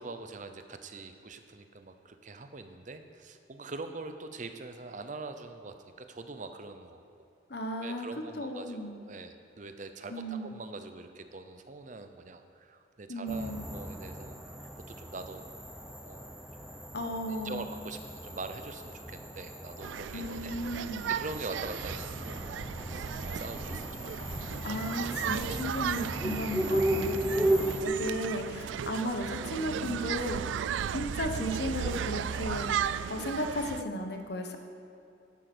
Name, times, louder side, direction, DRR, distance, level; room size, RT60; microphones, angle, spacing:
voice 1, 0.0-7.2 7.8-15.5 16.0-16.3 16.6-16.8 17.4-20.5 21.1-24.0, right 3 dB, 40° right, 8 dB, 0.7 m, -43 dB
voice 2, 7.5-8.1 8.4-9.0 10.1-10.6 13.1-13.7 16.9-17.7 20.1-21.1 24.6-30.4 30.9-34.6, left 1 dB, 60° left, 4 dB, 1.1 m, -35 dB
sound 1, 13.3-27.8, right 1 dB, ahead, 0.7 m, -35 dB
sound 2, 19.8-33.8, right 8 dB, 75° right, 0.3 m, -35 dB
11.5 x 8.8 x 6.1 m, 2.7 s
head